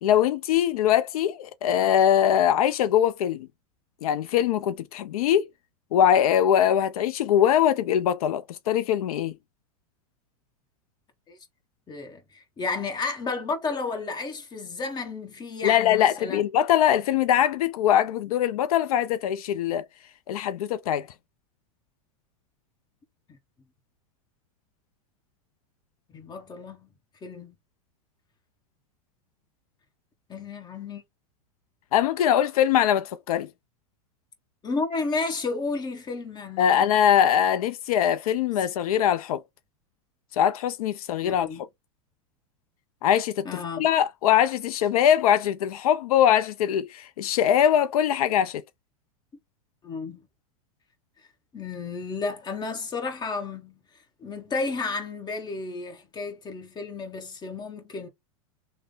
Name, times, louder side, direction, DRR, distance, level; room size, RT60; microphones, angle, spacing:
voice 1, 0.0-3.5 4.0-5.5 5.9-9.3 15.6-19.8 20.3-21.1 31.9-33.5 36.6-39.4 40.3-41.5 43.0-43.5 43.8-48.6, left 10 dB, 80° left, 0.4 m, -22 dB
voice 2, 11.9-16.4 26.1-26.9 27.2-27.6 30.3-31.0 34.6-36.9 41.2-41.6 43.4-43.9 49.8-50.2 51.5-53.8 54.2-58.1, left 4 dB, 25° left, 1.1 m, -32 dB
3.3 x 2.1 x 3.7 m
hypercardioid pair, 115°, 19 cm